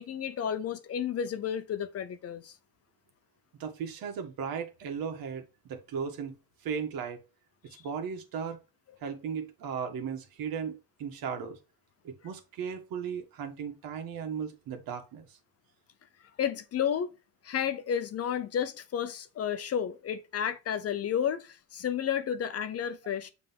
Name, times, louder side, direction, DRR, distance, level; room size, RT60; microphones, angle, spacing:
voice 1, 0.0-2.5 7.7-7.8 16.4-17.1 17.4-23.3, left 8 dB, 40° left, 0.7 m, -32 dB
voice 2, 3.6-6.4 6.6-7.2 7.8-8.6 9.0-11.6 12.0-15.4, right 6 dB, 70° right, 1.7 m, -36 dB
7.5 x 3.5 x 3.7 m
cardioid pair, 160°, 36 cm